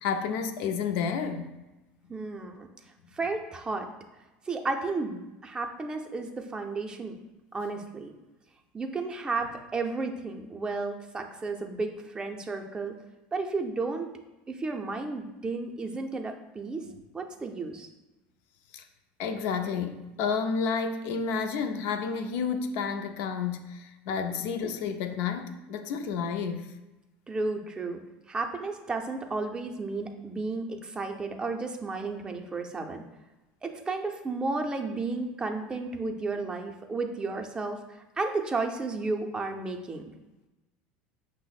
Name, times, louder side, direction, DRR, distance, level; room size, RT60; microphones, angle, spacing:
voice 1, 0.0-1.5 18.7-18.8 19.2-26.6, left 6 dB, 70° left, 0.4 m, -30 dB
voice 2, 2.1-2.7 3.1-3.9 4.5-7.2 7.5-8.1 8.7-12.9 13.3-14.1 14.5-16.9 17.1-17.9 24.3-24.4 27.3-28.0 28.3-33.0 33.6-40.0, right 3 dB, 20° right, 0.5 m, -33 dB
5.5 x 2.0 x 4.0 m
supercardioid pair, 110°, 4 cm